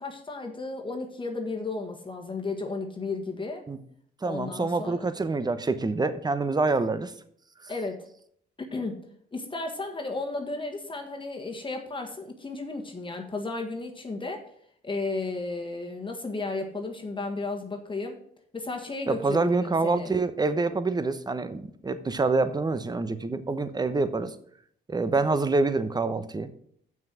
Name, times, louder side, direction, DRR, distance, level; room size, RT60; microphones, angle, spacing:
voice 1, 0.0-3.6 4.2-5.0 7.7-8.0 8.6-9.0 9.3-14.4 14.8-18.2 18.5-20.1, left 3 dB, 25° left, 2 dB, 1.5 m, -34 dB
voice 2, 4.2-7.1 19.1-24.3 24.9-26.5, right 3 dB, 20° right, 12 dB, 0.9 m, -26 dB
7.2 x 6.3 x 7.5 m, 0.65 s
cardioid pair, 90°, 20 cm